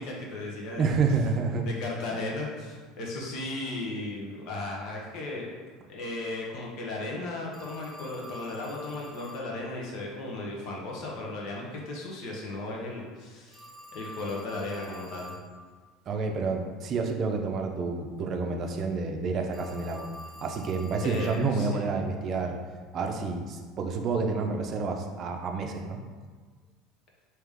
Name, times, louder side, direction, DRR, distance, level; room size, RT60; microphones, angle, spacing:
voice 1, 0.0-0.9 1.6-5.5 5.9-13.6 13.9-15.4 21.0-21.9, left 2 dB, 60° left, -2 dB, 0.9 m, -36 dB
voice 2, 0.8-1.7 16.1-20.1 20.4-22.6 22.9-26.0, right 4 dB, 45° right, 3 dB, 0.5 m, -29 dB
Telephone, 7.5-9.5 13.5-15.5 19.5-21.5, equal, ahead, 1.2 m, -46 dB
3.4 x 2.9 x 3.6 m, 1.5 s
supercardioid pair, 110°, 0 cm